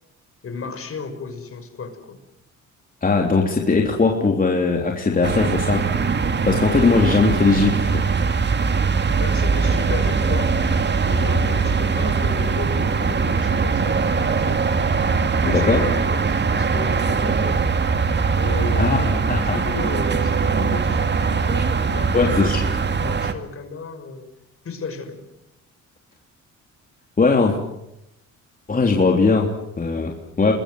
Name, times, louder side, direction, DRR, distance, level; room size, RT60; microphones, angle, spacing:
voice 1, 0.4-2.2 9.2-10.5 11.0-14.6 15.4-17.6 18.4-24.3 24.6-25.2, left 4 dB, 45° left, 7 dB, 6.1 m, -34 dB
voice 2, 3.0-5.9 6.4-8.1 15.4-15.9 18.8-19.6 22.1-22.6 27.2-27.6 28.7-30.5, left 4 dB, 30° left, 1 dB, 3.5 m, -19 dB
sound 1, 5.2-23.3, right 5 dB, 35° right, 2.1 m, -21 dB
27.5 x 21.5 x 7.9 m, 0.84 s
cardioid pair, 90°, 30 cm